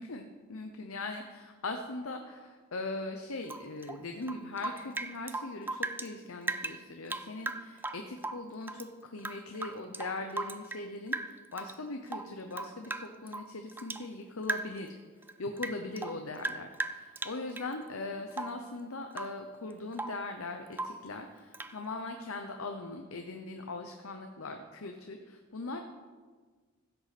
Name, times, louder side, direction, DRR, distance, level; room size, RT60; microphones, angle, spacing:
voice 1, 0.0-14.9 15.4-25.8, left 2 dB, 75° left, 5 dB, 0.8 m, -40 dB
Rain / Drip, 3.4-6.1 6.4-8.9 9.2-10.9 11.1-11.8 12.1-14.1 14.4-14.9 15.2-17.7 18.3-18.7 19.1-19.4 19.7-20.3 20.7-21.1 21.5-21.8, right 2 dB, 10° right, 0.3 m, -38 dB
15.5 x 8.1 x 4.2 m, 1.5 s
head